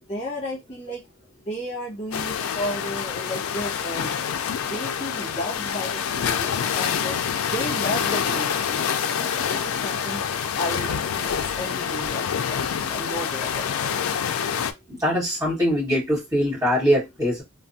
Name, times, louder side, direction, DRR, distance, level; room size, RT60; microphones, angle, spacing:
voice 1, 0.1-1.0 1.4-4.2 4.6-7.2 7.4-10.2 10.5-13.9, left 1 dB, 30° left, 1.1 m, -33 dB
sound 1, 2.1-14.7, left 7 dB, 80° left, 0.4 m, -26 dB
voice 2, 14.9-17.4, equal, 15° right, 1.7 m, -22 dB
3.2 x 2.2 x 2.6 m
head